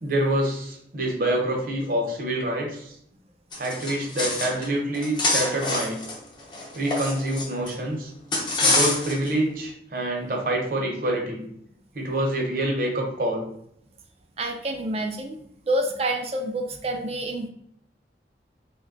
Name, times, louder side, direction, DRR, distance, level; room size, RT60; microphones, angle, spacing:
voice 1, 0.0-3.0 3.6-6.0 6.7-8.1 8.6-11.4 11.9-13.5, right 1 dB, 50° right, 0 dB, 0.8 m, -26 dB
sound 1, 3.5-4.7 4.9-7.7 8.3-9.3, left 2 dB, 25° left, 0.6 m, -26 dB
voice 2, 14.4-15.4 15.7-17.5, right 1 dB, 35° right, 4 dB, 0.3 m, -27 dB
3.1 x 2.2 x 3.7 m, 0.70 s
head